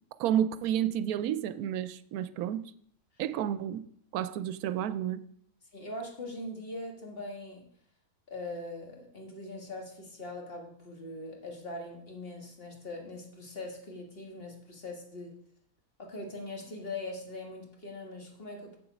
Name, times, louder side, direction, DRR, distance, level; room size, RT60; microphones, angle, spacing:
voice 1, 0.2-2.6 3.2-3.8 4.1-5.2, right 10 dB, 90° right, 1.1 m, -30 dB
voice 2, 5.7-7.7 8.3-15.3 16.0-18.8, left 2 dB, 40° left, 1.9 m, -41 dB
7.8 x 7.0 x 5.1 m
omnidirectional pair, 1.5 m